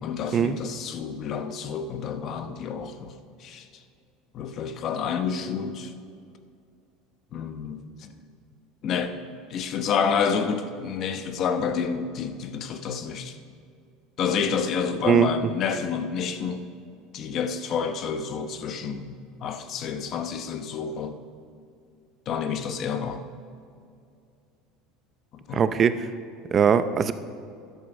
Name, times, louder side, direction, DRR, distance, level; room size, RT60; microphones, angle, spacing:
voice 1, 0.0-3.7 4.3-5.9 7.3-8.1 8.8-9.2 9.5-13.4 14.2-16.7 17.1-19.1 19.4-21.2 22.3-23.2 25.3-25.7, left 6 dB, 40° left, 9 dB, 0.9 m, -29 dB
voice 2, 25.5-26.1 26.5-27.1, right 7 dB, 25° right, 12 dB, 0.6 m, -20 dB
13.0 x 11.0 x 5.3 m, 2.4 s
cardioid pair, 150°, 0 cm